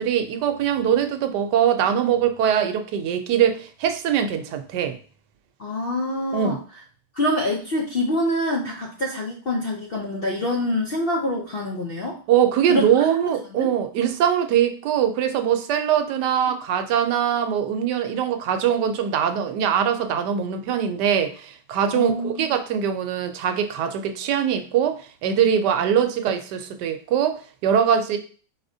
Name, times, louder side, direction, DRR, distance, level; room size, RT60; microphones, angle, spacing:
voice 1, 0.0-5.0 6.3-6.6 12.3-28.2, right 9 dB, 80° right, 1.2 m, -22 dB
voice 2, 5.6-6.6 7.1-12.2 12.7-12.8 13.6-13.7 16.4-16.5 21.9-22.5, left 1 dB, 60° left, 0.6 m, -25 dB
4.6 x 4.2 x 2.6 m
omnidirectional pair, 1.8 m